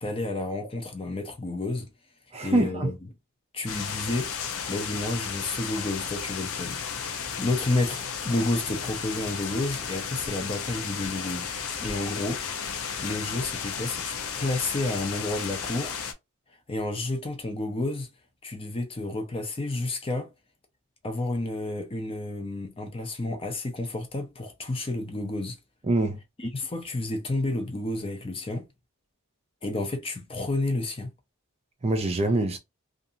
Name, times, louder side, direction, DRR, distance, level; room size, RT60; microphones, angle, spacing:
voice 1, 0.0-1.9 2.4-3.0 3.5-4.3 4.7-6.8 7.4-11.5 11.8-12.4 13.0-16.0 16.7-18.1 18.4-20.3 21.0-25.6 26.4-28.7 29.6-31.1, left 2 dB, 25° left, 0.5 m, -30 dB
voice 2, 2.3-2.9 25.9-26.2 31.8-32.6, right 2 dB, 25° right, 0.4 m, -24 dB
sound 1, 3.7-16.1, left 6 dB, 65° left, 0.6 m, -34 dB
2.6 x 2.5 x 2.6 m
head